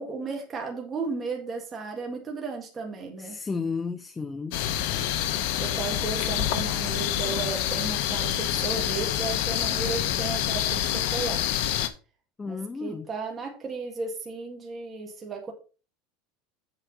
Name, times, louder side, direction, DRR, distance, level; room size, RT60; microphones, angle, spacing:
voice 1, 0.0-3.4 5.6-11.7 12.4-15.5, right 4 dB, 20° right, 1.7 m, -34 dB
voice 2, 3.2-4.6 12.4-13.1, left 4 dB, 15° left, 0.4 m, -33 dB
sound 1, 4.5-11.9, left 11 dB, 65° left, 1.0 m, -27 dB
8.0 x 5.0 x 5.2 m
supercardioid pair, 155°, 0 cm